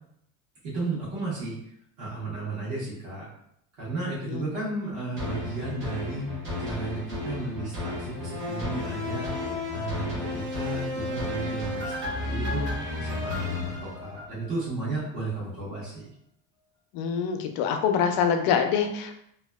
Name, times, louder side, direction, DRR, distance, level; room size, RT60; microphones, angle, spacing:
voice 1, 0.6-1.6 2.0-3.3 3.8-9.3 9.7-12.7 13.0-16.1, right 2 dB, 60° right, -9 dB, 1.1 m, -34 dB
sound 1, 5.2-14.6 15.0-15.1, left 2 dB, 30° right, 0.8 m, -32 dB
voice 2, 16.9-19.2, left 7 dB, 75° left, 6 dB, 0.5 m, -25 dB
2.8 x 2.2 x 2.2 m, 0.72 s
cardioid pair, 170°, 35 cm